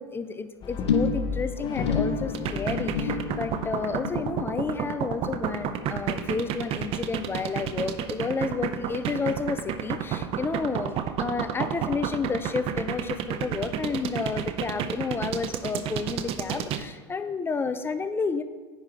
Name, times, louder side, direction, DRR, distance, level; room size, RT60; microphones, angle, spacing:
voice 1, 0.0-18.4, left 4 dB, 15° left, 11 dB, 0.4 m, -31 dB
Brass instrument, 0.6-4.9, left 4 dB, 35° left, 0.8 m, -35 dB
sound 1, 0.9-7.5 7.7-8.2 8.5-8.6, left 5 dB, 90° left, 0.6 m, -32 dB
sound 2, 2.3-16.8, right 10 dB, 45° right, 0.5 m, -30 dB
10.0 x 4.9 x 3.3 m, 1.5 s
hypercardioid pair, 90°, 14 cm